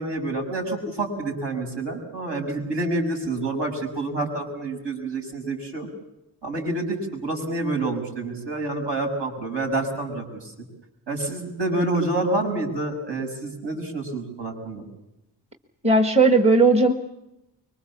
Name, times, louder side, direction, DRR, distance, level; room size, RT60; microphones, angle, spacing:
voice 1, 0.0-5.9 6.4-10.2 11.1-14.8, right 2 dB, 65° right, 1 dB, 6.7 m, -28 dB
voice 2, 15.8-16.9, right 3 dB, 15° right, 5 dB, 1.4 m, -16 dB
25.0 x 23.0 x 7.2 m, 0.92 s
wide cardioid pair, 165°, 45 cm